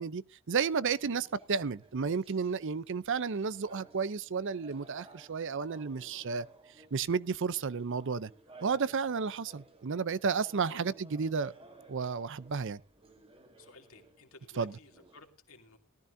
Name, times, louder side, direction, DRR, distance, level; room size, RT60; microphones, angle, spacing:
voice 1, 0.0-6.5 6.9-8.3 8.6-11.5 11.9-12.8 14.6-14.8, right 5 dB, 60° right, 0.6 m, -32 dB
sound 1, 0.6-15.3, right 2 dB, 25° right, 2.0 m, -58 dB
voice 2, 13.6-15.8, left 3 dB, 65° left, 2.7 m, -56 dB
18.5 x 14.0 x 2.7 m
head